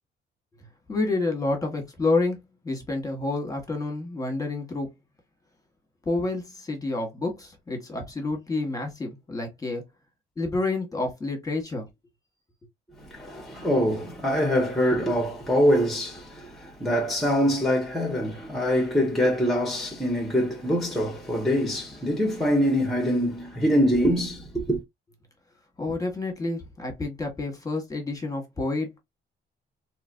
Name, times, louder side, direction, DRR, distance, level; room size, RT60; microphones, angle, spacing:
voice 1, 0.9-4.9 6.0-9.8 10.4-11.9 25.8-29.0, left 2 dB, 15° left, 1.6 m, -29 dB
voice 2, 13.0-24.8, equal, ahead, 1.3 m, -24 dB
3.1 x 3.0 x 2.6 m
cardioid pair, 90°, 20 cm